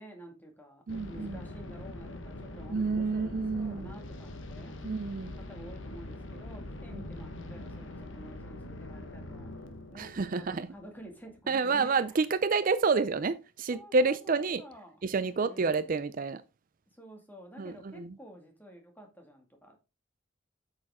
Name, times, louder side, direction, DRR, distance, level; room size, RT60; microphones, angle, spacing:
voice 1, 0.0-4.7 5.3-9.6 9.9-12.0 13.7-15.9 16.9-19.8, right 1 dB, 10° left, 2.1 m, -50 dB
sound 1, 0.9-11.6, left 1 dB, 65° left, 1.3 m, -43 dB
voice 2, 0.9-1.4 2.7-4.0 4.8-5.3 6.9-7.0 9.9-10.7 11.5-14.6 15.0-16.4 17.6-18.1, right 4 dB, 40° right, 0.4 m, -29 dB
8.4 x 6.8 x 3.6 m
head